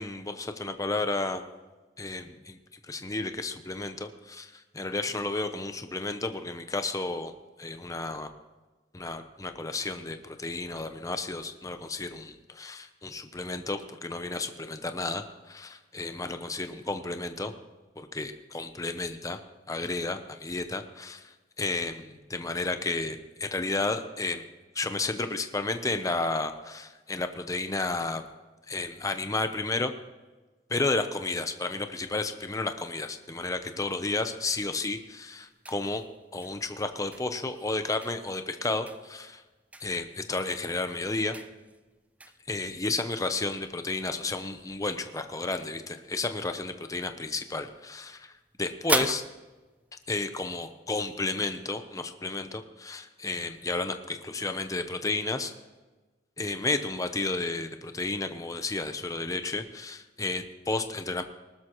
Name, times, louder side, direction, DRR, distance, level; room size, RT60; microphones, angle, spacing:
voice 1, 0.0-1.4 2.0-2.6 2.8-7.3 7.6-8.3 8.9-17.5 18.0-19.4 19.7-24.4 24.7-28.2 28.7-29.9 30.7-36.0 36.3-39.4 39.8-41.4 42.5-48.3 48.6-49.2 50.1-55.5 56.4-61.2, left 3 dB, 20° left, 8 dB, 0.7 m, -32 dB
sound 1, 32.0-50.8, right 2 dB, 10° right, 0.4 m, -42 dB
19.5 x 12.5 x 3.1 m, 1.2 s
head